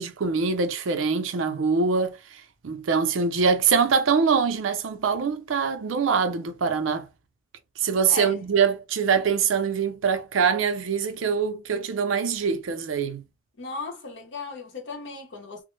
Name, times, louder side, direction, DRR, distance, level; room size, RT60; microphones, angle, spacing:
voice 1, 0.0-7.1 7.8-13.2, right 5 dB, 90° right, 0.5 m, -24 dB
voice 2, 8.1-8.4 13.6-15.6, left 4 dB, 65° left, 0.7 m, -36 dB
2.0 x 2.0 x 3.0 m
head